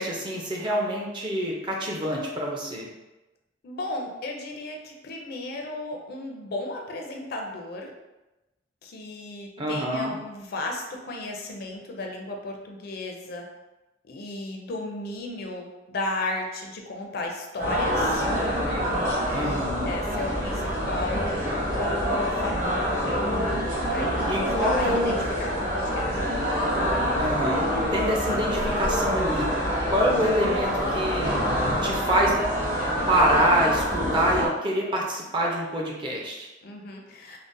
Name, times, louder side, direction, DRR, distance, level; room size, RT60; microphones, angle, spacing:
voice 1, 0.0-2.9 9.6-10.2 19.3-19.9 24.3-25.2 27.1-29.5 29.9-31.3 31.8-32.3 33.1-36.5, equal, 25° right, -2 dB, 0.5 m, -26 dB
voice 2, 3.6-7.9 8.8-13.4 14.1-18.2 19.0-22.9 23.9-26.2 36.6-37.4, left 2 dB, 55° left, 2 dB, 0.4 m, -34 dB
sound 1, 17.6-34.5, equal, 45° right, 1.3 m, -26 dB
3.7 x 2.1 x 2.5 m, 1.0 s
head